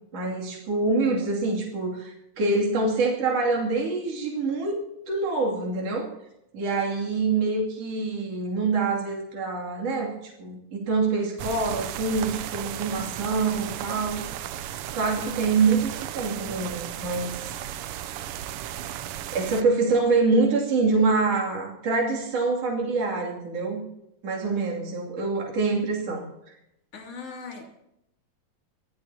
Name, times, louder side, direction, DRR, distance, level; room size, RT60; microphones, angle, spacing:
voice 1, 0.1-6.1 6.5-14.4 14.9-17.5 19.3-23.9 24.2-26.3, right 3 dB, 55° right, -3 dB, 3.9 m, -25 dB
sound 1, 11.4-19.6, right 11 dB, 85° right, 1.2 m, -35 dB
voice 2, 26.9-27.6, left 5 dB, 55° left, 0 dB, 3.8 m, -39 dB
24.0 x 15.0 x 2.9 m, 0.82 s
omnidirectional pair, 3.3 m